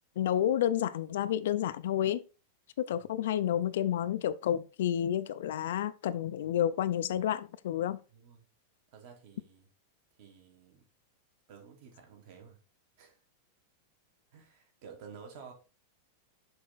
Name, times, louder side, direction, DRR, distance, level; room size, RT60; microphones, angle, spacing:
voice 1, 0.2-2.2 2.8-8.0, left 11 dB, 65° left, 0.4 m, -30 dB
voice 2, 8.1-8.5 8.9-9.7 10.2-10.9 11.5-12.6 13.0-13.2 14.3-15.5, right 6 dB, 40° right, 1.6 m, -52 dB
6.4 x 4.3 x 4.0 m
supercardioid pair, 180°, 0 cm